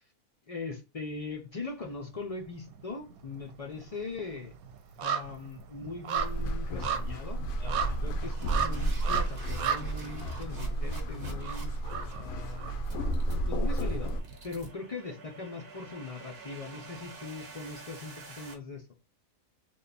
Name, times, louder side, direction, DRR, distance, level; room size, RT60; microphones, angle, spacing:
voice 1, 0.5-4.5 5.0-11.7 12.1-12.8 13.5-14.1 14.4-18.9, left 4 dB, 60° left, 0.3 m, -40 dB
sound 1, 2.1-2.8 3.1-13.1 13.4-13.5, right 7 dB, 85° right, 1.1 m, -36 dB
sound 2, 4.8-5.0 5.3-5.6 6.1-6.4 6.9-7.2 7.8-18.5, right 4 dB, 50° right, 1.2 m, -49 dB
sound 3, 6.2-14.2, right 1 dB, 75° left, 1.1 m, -32 dB
3.4 x 2.2 x 3.9 m
omnidirectional pair, 1.5 m